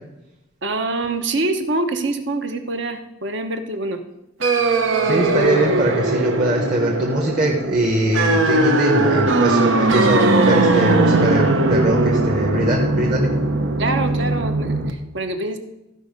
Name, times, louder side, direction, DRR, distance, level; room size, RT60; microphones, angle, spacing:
voice 1, 0.6-4.0 13.8-15.6, right 2 dB, 65° right, 7 dB, 1.0 m, -25 dB
sound 1, 4.4-14.9, right 2 dB, 90° right, 0.9 m, -19 dB
voice 2, 5.0-13.3, right 1 dB, 40° right, 0 dB, 1.3 m, -21 dB
14.0 x 5.2 x 5.3 m, 0.91 s
head